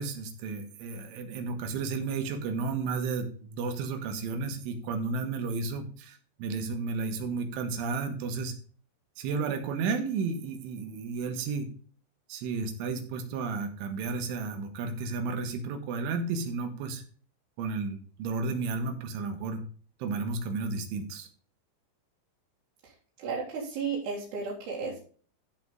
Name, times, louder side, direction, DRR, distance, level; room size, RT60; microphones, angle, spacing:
voice 1, 0.0-8.5 9.2-11.7 12.3-17.0 17.6-19.6 20.0-21.3, right 4 dB, 85° right, 6 dB, 3.9 m, -32 dB
voice 2, 23.2-25.0, right 5 dB, 65° right, -4 dB, 3.9 m, -33 dB
14.5 x 5.2 x 3.8 m, 0.43 s
omnidirectional pair, 5.4 m